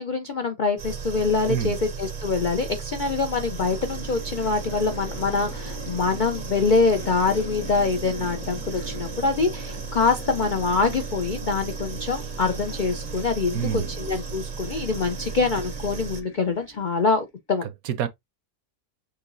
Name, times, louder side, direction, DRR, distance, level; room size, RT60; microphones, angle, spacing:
voice 1, 0.0-17.7, left 4 dB, 80° left, 0.4 m, -25 dB
sound 1, 0.8-16.2, right 5 dB, 50° right, 0.6 m, -35 dB
voice 2, 1.4-1.8 13.5-13.9 17.8-18.1, right 9 dB, 70° right, 1.0 m, -26 dB
sound 2, 3.4-17.3, left 3 dB, 60° left, 1.3 m, -42 dB
6.7 x 2.8 x 2.5 m
omnidirectional pair, 1.6 m